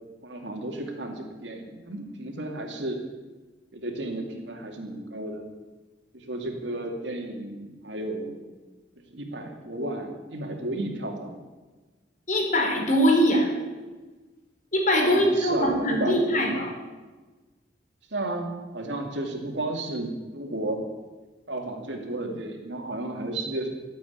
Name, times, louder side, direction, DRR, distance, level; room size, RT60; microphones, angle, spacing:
voice 1, 0.2-3.0 3.7-5.4 6.1-8.4 9.1-11.4 15.0-16.4 18.1-20.8 21.5-23.7, right 2 dB, 85° right, 3 dB, 2.6 m, -33 dB
voice 2, 12.3-13.5 14.7-16.7, equal, 45° left, 1 dB, 3.8 m, -22 dB
14.5 x 8.4 x 9.4 m, 1.3 s
head